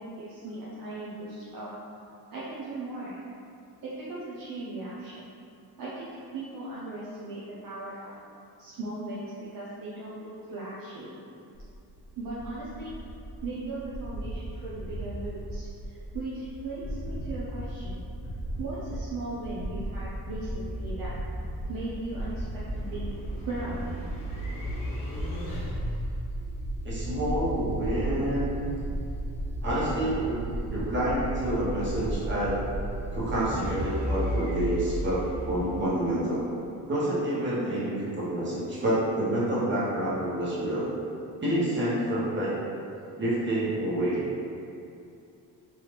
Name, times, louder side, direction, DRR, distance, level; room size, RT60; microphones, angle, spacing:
voice 1, 0.0-1.7 2.3-3.2 3.8-5.3 5.8-8.1 8.6-11.2 12.2-12.9 13.4-18.0 18.6-21.1 21.7-23.1 23.4-23.8, right 2 dB, 55° right, -8 dB, 0.6 m, -38 dB
sound 1, 11.5-31.4, right 1 dB, 30° left, 0.5 m, -37 dB
sound 2, 20.9-36.4, right 1 dB, 55° left, 1.0 m, -35 dB
voice 2, 26.8-28.7 29.6-30.4 30.7-32.6 33.1-36.4 36.9-40.9 41.4-42.5 43.2-44.2, right 1 dB, 30° right, -9 dB, 1.1 m, -28 dB
3.0 x 2.4 x 3.2 m, 2.6 s
cardioid pair, 110°, 40 cm